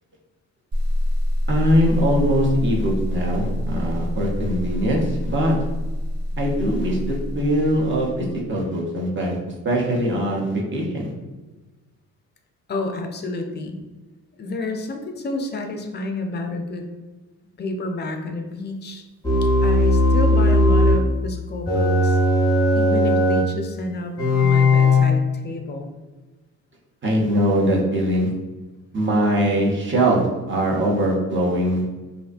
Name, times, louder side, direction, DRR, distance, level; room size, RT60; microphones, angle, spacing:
sound 1, 0.7-8.5, left 1 dB, 50° right, 1.1 m, -26 dB
voice 1, 1.5-5.5 6.4-9.4 9.6-11.1 27.0-28.3 28.9-31.8, equal, 25° right, -2 dB, 0.7 m, -21 dB
voice 2, 12.7-13.8 14.4-16.9 17.6-19.0 19.6-22.2 22.7-25.9, left 2 dB, 25° left, 4 dB, 0.3 m, -30 dB
sound 2, 19.2-21.1 21.7-23.5 24.2-25.0, left 1 dB, 10° left, 0.8 m, -17 dB
2.5 x 2.1 x 2.4 m, 1.2 s
hypercardioid pair, 50°, 44 cm